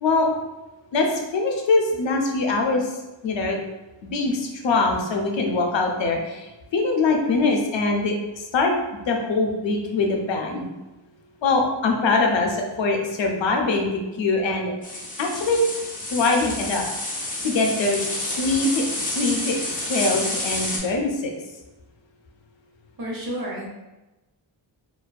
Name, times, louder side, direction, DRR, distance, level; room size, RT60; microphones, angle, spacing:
voice 1, 0.9-2.9 3.2-3.6 4.0-8.7 9.1-10.7 11.4-15.7 16.1-16.9 17.4-18.0 18.3-19.6 19.9-21.3, left 3 dB, 80° left, 2 dB, 0.5 m, -23 dB
sound 1, 14.8-20.8, left 1 dB, 20° left, 0.3 m, -29 dB
voice 2, 23.0-23.7, equal, 50° right, -4 dB, 0.8 m, -30 dB
2.4 x 2.2 x 2.2 m, 1.0 s
wide cardioid pair, 125°, 44 cm